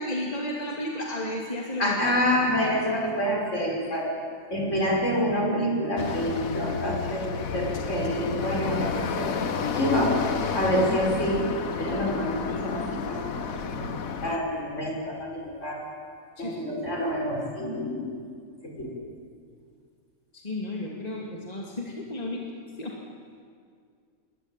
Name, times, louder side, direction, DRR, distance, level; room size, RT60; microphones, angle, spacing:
voice 1, 0.0-2.0 16.4-16.6 20.3-22.4 22.8-22.9, left 1 dB, 30° left, -2 dB, 2.7 m, -33 dB
voice 2, 1.8-4.1 4.5-9.3 9.7-10.2 10.5-11.4 11.7-13.8 14.2-15.8 16.4-18.1 18.6-18.9, equal, 60° left, -1 dB, 6.3 m, -27 dB
sound 1, 6.0-14.4, left 6 dB, 75° left, 1.6 m, -31 dB
27.0 x 22.5 x 9.1 m, 2.2 s
omnidirectional pair, 1.5 m